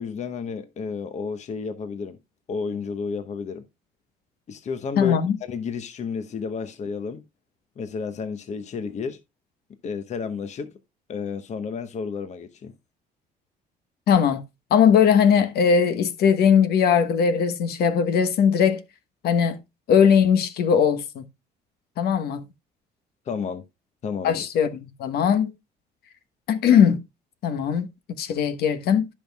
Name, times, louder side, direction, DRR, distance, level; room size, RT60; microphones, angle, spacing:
voice 1, 0.0-2.2 2.5-3.6 4.5-7.2 7.8-9.2 9.8-10.7 11.1-12.7 23.3-23.6 24.0-24.4, left 5 dB, 45° left, 0.9 m, -31 dB
voice 2, 5.0-5.4 14.1-14.4 14.7-18.8 19.2-19.6 19.9-21.2 22.0-22.4 24.2-25.5 26.5-27.0 27.4-27.9 28.2-29.1, left 7 dB, 70° left, 1.2 m, -19 dB
15.0 x 5.6 x 2.3 m
cardioid pair, 110°, 17 cm